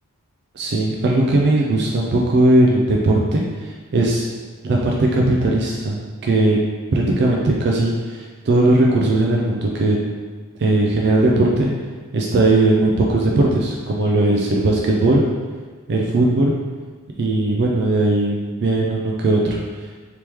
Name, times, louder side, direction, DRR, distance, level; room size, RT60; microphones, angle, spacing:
voice 1, 0.5-4.3 4.6-6.6 6.9-10.0 10.6-11.7 12.1-15.2 15.9-16.5 17.2-19.6, right 2 dB, 50° right, -2 dB, 0.4 m, -18 dB
3.4 x 2.9 x 3.0 m, 1.5 s
head